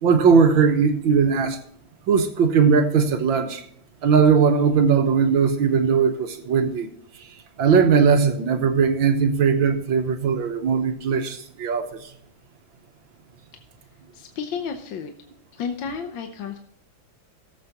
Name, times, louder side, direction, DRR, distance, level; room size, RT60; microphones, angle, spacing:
voice 1, 0.0-1.6 2.1-3.6 4.0-6.9 7.6-12.1, right 6 dB, 75° right, 1.8 m, -19 dB
voice 2, 14.1-15.1 15.5-16.6, left 6 dB, 70° left, 1.6 m, -32 dB
17.5 x 8.0 x 2.9 m
omnidirectional pair, 2.2 m